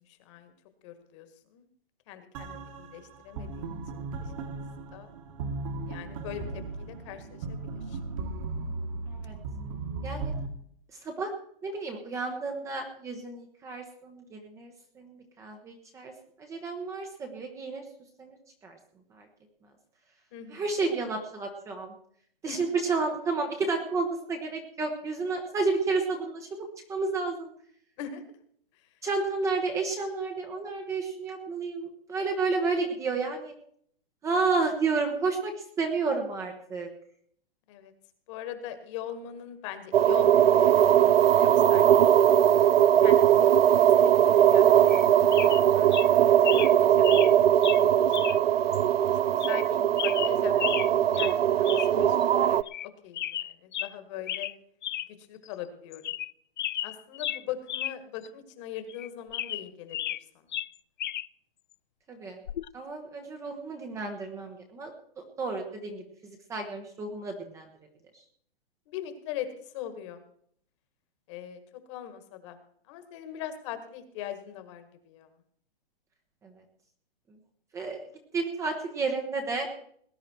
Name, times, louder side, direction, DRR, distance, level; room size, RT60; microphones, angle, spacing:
voice 1, 0.1-0.5 0.8-1.3 1.5-1.7 2.1-4.3 4.9-5.1 5.9-8.0 20.3-20.6 22.4-22.7 28.0-28.2 37.7-37.9 38.3-42.3 43.0-44.6 44.9-45.5 45.7-47.1 47.3-48.4 49.3-54.5 55.2-56.1 56.8-60.5 68.9-70.2 71.3-72.6 72.9-75.3, left 10 dB, 30° left, 9 dB, 1.8 m, -41 dB
sound 1, 2.3-10.5, right 3 dB, 35° right, 1.7 m, -37 dB
voice 2, 11.6-16.1 16.4-17.8 18.2-18.4 18.6-18.8 19.1-19.3 20.5-21.9 22.4-27.5 29.0-33.5 34.2-36.9 62.1-62.4 62.7-64.9 65.4-67.7 76.4-76.5 77.7-78.0 78.3-79.7, right 4 dB, 10° right, 3 dB, 1.0 m, -31 dB
sound 2, 39.9-52.6, right 10 dB, 85° right, 0.6 m, -20 dB
sound 3, 44.9-45.1 45.3-45.6 45.9-46.1 46.4-46.7 47.0-47.3 47.6-47.8 48.1-48.4 48.7-48.8 49.4-49.7 50.0-50.9 51.1-51.4 51.7-51.9 52.2-52.3 52.7-52.9 53.1-53.9 54.3-54.5 54.8-55.1 55.5-55.6 55.9-56.3 56.6-57.9 58.2-58.3 58.9-60.2 60.5-61.3 62.5-62.7, left 12 dB, 55° left, 0.5 m, -33 dB
19.0 x 10.0 x 4.5 m, 0.65 s
hypercardioid pair, 160°, 29 cm